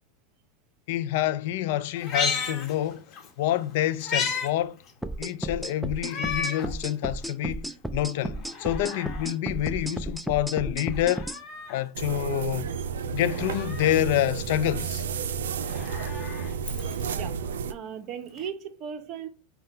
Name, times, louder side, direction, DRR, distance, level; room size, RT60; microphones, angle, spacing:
voice 1, 0.9-4.8 5.2-11.3 11.7-12.7 13.1-15.0, left 13 dB, 65° left, 0.4 m, -27 dB
Meow, 2.0-3.3 3.6-4.5 4.9-5.0 6.0-6.7 7.2-7.3 8.3-9.3 10.8-11.8 13.2-14.0 15.5-17.2 18.4-18.5, left 5 dB, 40° left, 1.1 m, -33 dB
sound 1, 5.0-11.4, right 1 dB, ahead, 0.3 m, -33 dB
sound 2, 12.0-17.7, right 7 dB, 90° right, 0.4 m, -31 dB
voice 2, 17.7-19.3, right 8 dB, 45° right, 0.7 m, -37 dB
5.5 x 2.3 x 4.3 m
hypercardioid pair, 115°, 0 cm